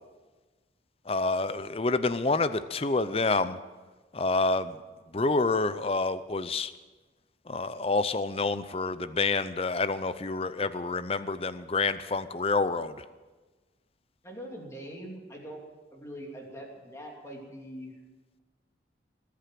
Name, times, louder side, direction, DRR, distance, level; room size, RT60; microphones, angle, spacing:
voice 1, 1.1-3.6 4.1-4.8 5.1-6.7 7.5-12.9, left 3 dB, 30° left, 14 dB, 0.6 m, -28 dB
voice 2, 14.2-15.6 15.9-17.9, equal, 15° left, -1 dB, 2.9 m, -42 dB
20.5 x 8.5 x 7.6 m, 1.3 s
head